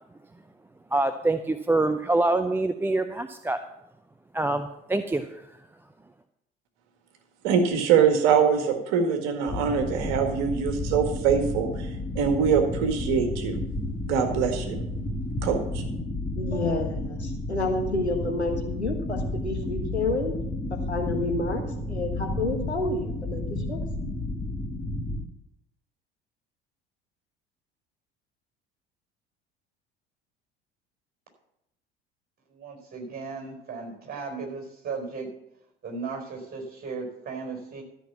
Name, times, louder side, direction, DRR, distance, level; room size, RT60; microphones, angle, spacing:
voice 1, 0.9-3.6 4.3-5.5, right 2 dB, 5° right, 9 dB, 0.5 m, -25 dB
voice 2, 7.4-13.6 14.1-14.8 15.4-15.8, right 7 dB, 55° right, 5 dB, 1.9 m, -23 dB
sound 1, 9.5-25.2, left 2 dB, 10° left, 1.6 m, -32 dB
voice 3, 16.4-20.3 20.9-21.6 21.9-23.8, left 2 dB, 90° left, 3 dB, 1.4 m, -29 dB
voice 4, 32.5-35.3 35.8-37.8, right 4 dB, 30° right, 2 dB, 4.7 m, -36 dB
13.0 x 6.0 x 7.1 m, 0.82 s
figure-of-eight pair, 65°, 32 cm